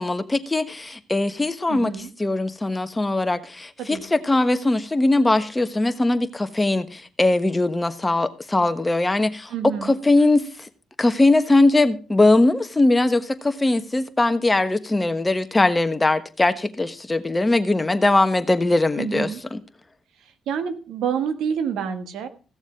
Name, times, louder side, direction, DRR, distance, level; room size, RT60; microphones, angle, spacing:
voice 1, 0.0-1.9 2.2-9.5 9.8-10.4 11.0-19.6, left 2 dB, 15° left, 1.3 m, -20 dB
voice 2, 1.7-2.1 3.8-4.0 9.5-9.9 19.0-19.4 20.5-22.3, right 7 dB, 80° right, 1.6 m, -27 dB
16.0 x 7.2 x 5.1 m
cardioid pair, 90°, 0 cm